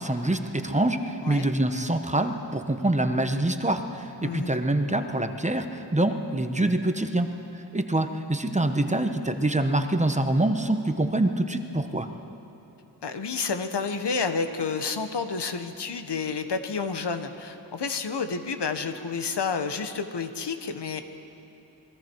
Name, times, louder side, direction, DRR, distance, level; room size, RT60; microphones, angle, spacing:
voice 1, 0.0-7.3 7.5-12.1, right 1 dB, 15° right, 6 dB, 1.1 m, -25 dB
voice 2, 4.2-4.5 13.0-21.0, left 5 dB, 70° left, 8 dB, 1.3 m, -30 dB
27.0 x 21.0 x 4.7 m, 2.8 s
wide cardioid pair, 85°, 43 cm